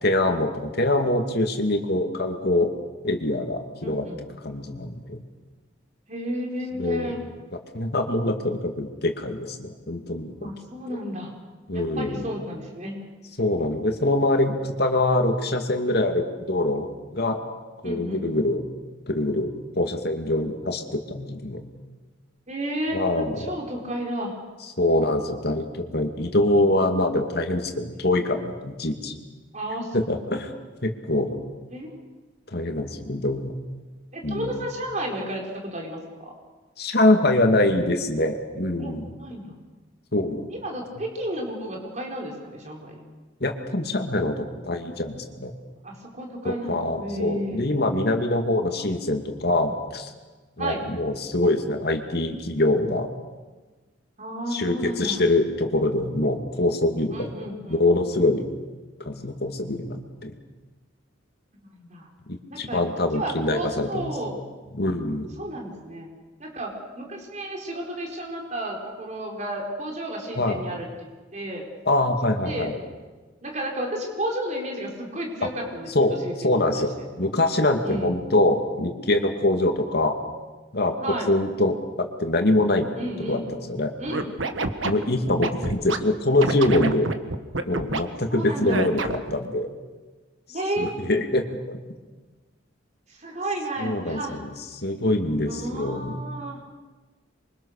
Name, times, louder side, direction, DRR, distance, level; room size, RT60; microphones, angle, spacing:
voice 1, 0.0-2.7 3.0-4.1 4.4-5.2 6.8-7.1 7.7-10.5 11.7-12.3 13.4-17.4 17.8-18.6 19.1-19.5 19.8-21.6 22.9-23.4 24.8-29.1 29.9-30.5 30.8-31.4 32.5-33.5 34.2-34.6 36.8-39.1 40.1-40.5 43.4-45.5 46.4-50.1 50.6-53.1 54.5-57.3 57.7-58.5 59.0-60.3 62.3-64.1 64.7-65.3 70.4-70.6 71.9-72.7 75.9-76.2 76.4-76.9 77.2-80.2 80.7-81.0 81.3-82.9 83.3-83.9 84.8-87.1 87.6-89.7 90.8-91.8 93.8-96.2, left 1 dB, 55° left, 5 dB, 2.6 m, -24 dB
voice 2, 3.8-4.2 6.1-7.2 10.4-11.3 11.7-13.0 17.8-18.3 22.5-24.3 29.5-30.0 31.7-31.9 34.1-35.4 35.7-36.3 38.8-39.6 40.5-43.0 45.8-47.6 50.6-50.8 54.2-55.2 57.1-57.8 61.7-62.1 62.5-62.8 63.1-64.4 65.4-66.1 66.4-71.7 72.4-72.9 73.4-76.9 77.8-78.1 81.0-81.3 83.0-83.5 84.0-84.3 88.3-88.8 90.5-90.9 93.1-94.4 95.4-96.6, right 1 dB, 40° right, 0 dB, 4.7 m, -32 dB
Scratching (performance technique), 84.1-86.0 86.4-88.0 88.7-89.3, right 3 dB, 90° right, 1.6 m, -27 dB
27.0 x 24.0 x 6.7 m, 1.3 s
head